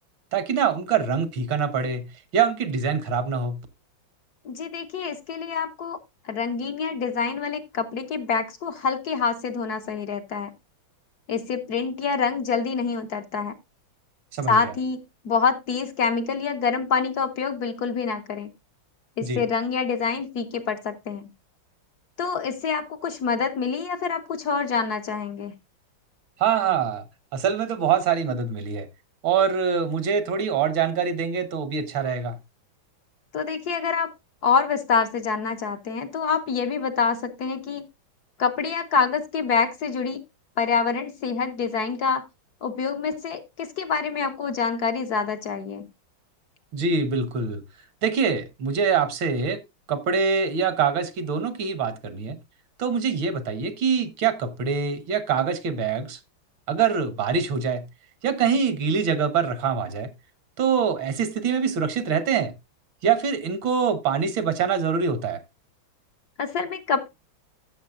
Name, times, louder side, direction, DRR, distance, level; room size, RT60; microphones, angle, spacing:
voice 1, 0.3-2.1 2.3-3.6 14.3-14.7 19.2-19.4 26.4-27.1 27.3-28.9 29.2-32.4 46.7-47.6 48.0-49.6 49.9-52.4 52.8-56.2 56.7-57.8 58.2-60.1 60.6-62.5 63.0-65.4, right 6 dB, 75° right, 1.9 m, -24 dB
voice 2, 4.4-6.0 6.3-10.5 11.3-13.6 14.5-15.0 15.2-18.5 19.2-21.3 22.2-25.5 33.3-34.1 34.4-37.8 38.4-40.2 40.6-42.2 42.6-45.9 66.4-67.1, left 5 dB, 60° left, 1.3 m, -26 dB
14.5 x 7.1 x 2.5 m
omnidirectional pair, 2.2 m